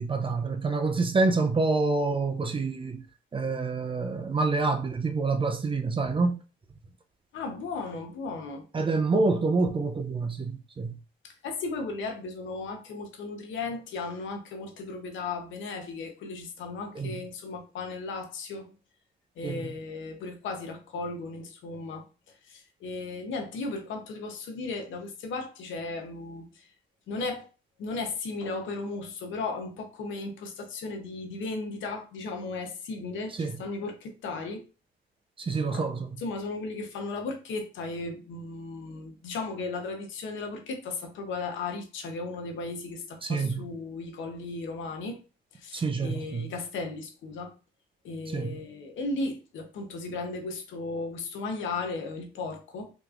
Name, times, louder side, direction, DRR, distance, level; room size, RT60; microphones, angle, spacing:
voice 1, 0.0-3.0 3.3-6.4 8.7-10.9 17.0-17.2 19.4-19.7 33.3-33.6 35.4-36.1 43.2-43.7 45.7-46.5 48.3-48.6, right 3 dB, 25° right, 0.5 m, -27 dB
voice 2, 7.3-8.6 11.2-18.7 19.4-22.1 22.4-26.7 27.1-27.5 27.8-34.6 35.7-35.9 36.2-45.2 45.5-47.5 48.0-52.9, left 3 dB, 80° left, 0.9 m, -36 dB
3.5 x 2.9 x 2.5 m
cardioid pair, 90°, 20 cm